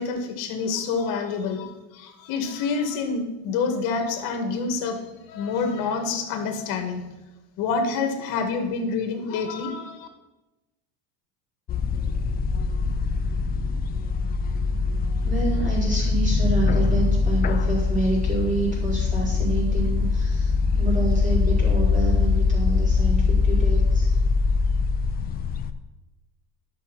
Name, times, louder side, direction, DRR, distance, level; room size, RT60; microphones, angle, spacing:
voice 1, 0.0-5.0 5.3-7.0 7.6-10.1, left 4 dB, 60° left, 5 dB, 1.9 m, -27 dB
sound 1, 11.7-25.7, left 4 dB, 25° left, 0.4 m, -22 dB
voice 2, 15.2-24.1, right 3 dB, 20° right, -5 dB, 4.3 m, -28 dB
11.0 x 6.2 x 6.1 m, 1.0 s
cardioid pair, 155°, 38 cm